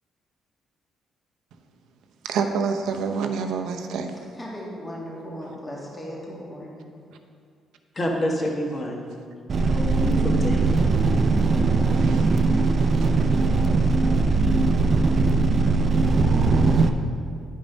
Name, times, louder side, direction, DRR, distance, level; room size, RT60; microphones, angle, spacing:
voice 1, 2.2-4.3 7.1-7.2 10.0-10.1 10.4-11.1 11.9-13.9 16.7-16.8, right 5 dB, 85° right, 5 dB, 0.7 m, -31 dB
voice 2, 4.4-6.8, equal, 20° left, -4 dB, 1.9 m, -37 dB
voice 3, 8.0-9.1 9.6-10.7, equal, 35° left, 0 dB, 1.6 m, -28 dB
sound 1, 9.5-16.9, right 3 dB, 45° right, 0.6 m, -20 dB
9.9 x 5.2 x 5.2 m, 2.2 s
cardioid pair, 90°, 0 cm